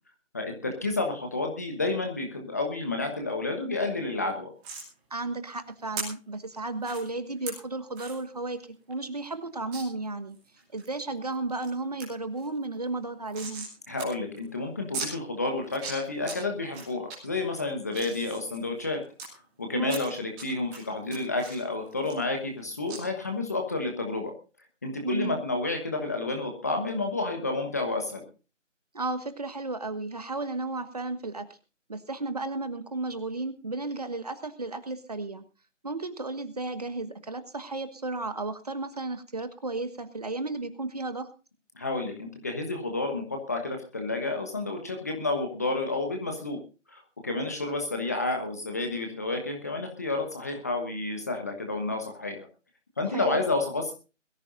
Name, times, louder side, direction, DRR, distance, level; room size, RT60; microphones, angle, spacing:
voice 1, 0.3-4.5 13.9-19.0 19.6-24.3 24.8-28.2 41.8-46.6 46.9-52.5 53.0-53.9, left 2 dB, 15° left, 3 dB, 1.2 m, -30 dB
sound 1, 4.6-4.9 6.0-6.1 6.8-7.0 7.5-7.6 8.0-8.2 8.6-8.7 8.9-9.0 9.7-9.8 10.3-10.9 11.3-11.7 12.0-12.1 12.4-13.7 14.0-14.1 14.4-14.5 14.9-15.1 15.6-16.4 16.7-17.2 17.6-19.3 19.8-20.4 20.7-22.6 22.9-23.0, right 4 dB, 5° right, 2.5 m, -38 dB
voice 2, 5.1-8.6 8.9-10.4 10.7-13.7 19.7-20.0 25.0-25.4 28.9-31.5 31.9-35.4 35.8-41.3 53.1-53.4, right 2 dB, 30° right, 10 dB, 1.4 m, -33 dB
22.0 x 14.5 x 2.6 m, 0.33 s
figure-of-eight pair, 160°, 38 cm